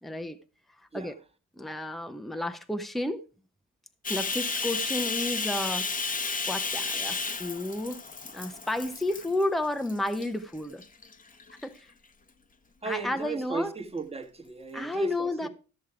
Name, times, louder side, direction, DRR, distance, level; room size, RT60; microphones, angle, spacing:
voice 1, 0.0-0.4 0.9-1.2 1.6-3.2 4.1-8.0 8.3-10.8 11.6-11.9 12.8-13.7 14.7-15.5, left 1 dB, ahead, 0.9 m, -32 dB
Bathtub (filling or washing), 4.0-9.4 9.9-10.3 10.8-11.6, left 4 dB, 25° left, 1.1 m, -32 dB
voice 2, 12.8-15.5, right 4 dB, 20° right, 1.5 m, -36 dB
13.0 x 6.3 x 4.8 m
cardioid pair, 90°, 30 cm